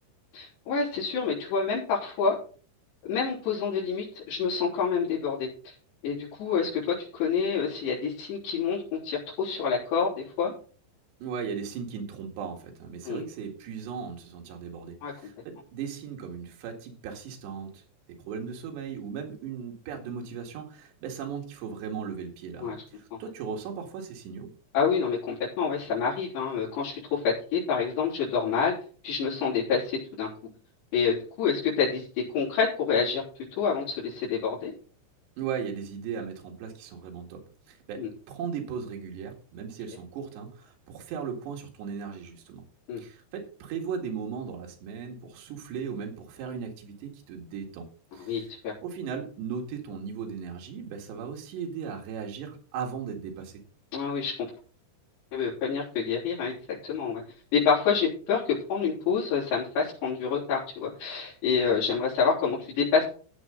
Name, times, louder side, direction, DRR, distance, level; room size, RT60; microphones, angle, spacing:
voice 1, 0.3-2.4 3.1-5.7 6.0-10.5 13.0-13.2 15.0-15.1 22.6-22.8 23.1-23.2 24.7-28.7 29.0-30.3 30.9-32.1 32.3-33.2 33.6-34.7 38.0-38.1 42.9-43.0 48.2-48.7 53.9-54.3 55.3-56.5 56.8-57.2 57.5-63.0, left 6 dB, 80° left, -8 dB, 6.2 m, -27 dB
voice 2, 11.2-17.8 18.3-24.5 35.4-42.6 43.0-47.9 48.1-48.4 48.8-53.6, right 6 dB, 80° right, 1 dB, 4.1 m, -37 dB
15.5 x 7.7 x 3.8 m, 0.41 s
omnidirectional pair, 5.0 m